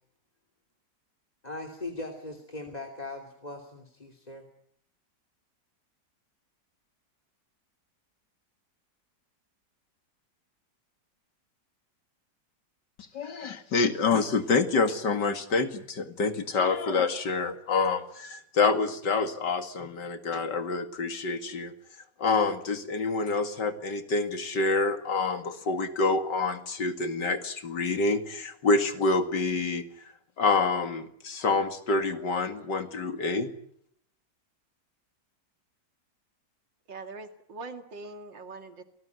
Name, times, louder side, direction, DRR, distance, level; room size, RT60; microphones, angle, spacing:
voice 1, 1.4-4.5, left 2 dB, 20° left, 5 dB, 3.0 m, -39 dB
voice 2, 13.1-21.7 22.2-29.8 30.4-33.5, left 4 dB, 70° left, 8 dB, 2.7 m, -27 dB
voice 3, 36.9-38.8, right 3 dB, 85° right, 7 dB, 3.0 m, -42 dB
28.5 x 19.5 x 9.5 m, 0.69 s
omnidirectional pair, 1.9 m